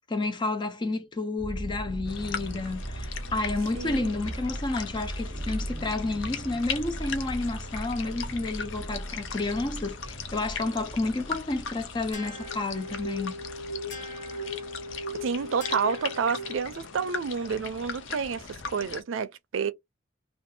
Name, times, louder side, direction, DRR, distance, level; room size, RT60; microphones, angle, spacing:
voice 1, 0.1-13.4, left 2 dB, 25° left, 0.4 m, -30 dB
sound 1, 1.4-15.3, right 1 dB, 30° right, 0.5 m, -38 dB
sound 2, 2.1-19.0, left 6 dB, 80° left, 0.6 m, -39 dB
voice 2, 3.7-4.1 15.2-19.7, right 6 dB, 90° right, 0.4 m, -29 dB
sound 3, 12.1-16.9, left 1 dB, 65° left, 1.2 m, -38 dB
2.6 x 2.3 x 2.6 m
head